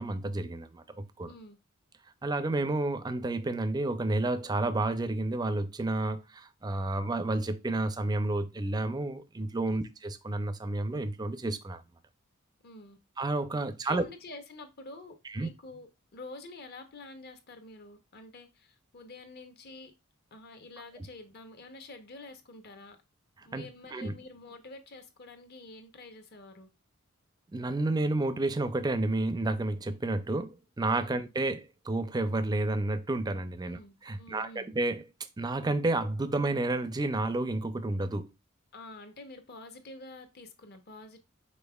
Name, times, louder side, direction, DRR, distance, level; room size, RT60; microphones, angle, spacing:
voice 1, 0.0-1.3 2.2-11.8 13.2-14.0 15.3-15.5 21.0-21.1 23.5-23.7 23.9-24.2 27.5-35.0 35.4-38.3, right 2 dB, 20° right, 0.4 m, -30 dB
voice 2, 1.2-1.6 9.7-9.8 12.6-13.0 13.8-19.9 20.3-23.0 23.4-26.7 31.0-31.2 33.6-34.7 38.7-41.2, left 2 dB, 50° left, 0.8 m, -48 dB
5.3 x 4.0 x 2.3 m
head